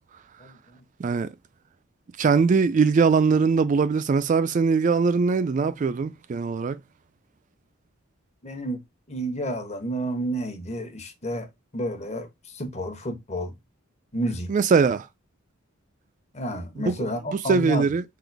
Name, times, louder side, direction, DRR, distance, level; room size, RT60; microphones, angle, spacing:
voice 1, 1.0-1.3 2.2-6.8 14.5-15.1 16.8-17.1 17.5-18.0, right 5 dB, 35° right, 0.3 m, -21 dB
voice 2, 8.4-8.8 9.1-11.5 11.7-13.5 14.1-14.5 16.3-17.9, equal, 30° left, 1.0 m, -30 dB
3.9 x 2.9 x 4.6 m
head